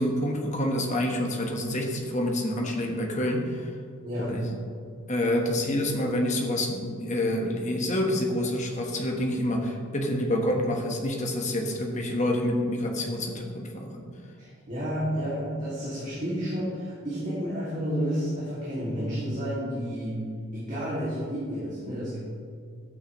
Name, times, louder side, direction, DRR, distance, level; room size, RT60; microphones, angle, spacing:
voice 1, 0.0-3.6 4.3-4.5 5.1-14.1, left 1 dB, 35° left, 1 dB, 1.2 m, -27 dB
voice 2, 4.0-4.4 14.4-20.2 20.5-22.2, equal, 35° right, -9 dB, 2.3 m, -31 dB
12.5 x 8.6 x 3.1 m, 2.3 s
head